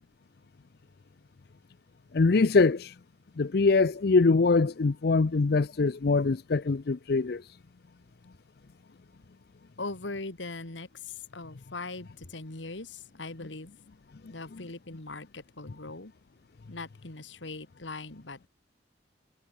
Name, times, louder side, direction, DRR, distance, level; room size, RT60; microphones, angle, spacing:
voice 1, 2.1-2.9 3.4-7.4, left 3 dB, 55° left, 0.5 m, -23 dB
voice 2, 9.8-13.7 14.3-16.1 16.7-18.5, left 3 dB, 85° left, 2.2 m, -40 dB
head